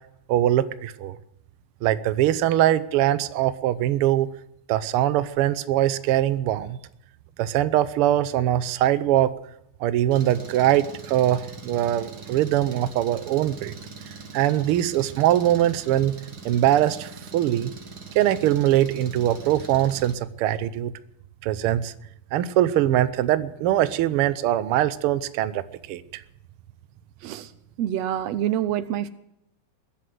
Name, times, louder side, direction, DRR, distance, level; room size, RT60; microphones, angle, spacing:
voice 1, 0.3-1.2 1.8-4.3 4.7-6.8 7.4-9.3 9.8-13.7 14.3-16.2 16.4-17.7 18.1-20.9 21.4-21.9 22.3-26.2, right 12 dB, 90° right, 14 dB, 1.2 m, -22 dB
Engine, 10.1-20.1, right 4 dB, 40° right, 1.6 m, -42 dB
voice 2, 27.8-29.1, right 11 dB, 75° right, 14 dB, 1.7 m, -26 dB
21.5 x 7.7 x 7.8 m, 0.81 s
omnidirectional pair, 3.5 m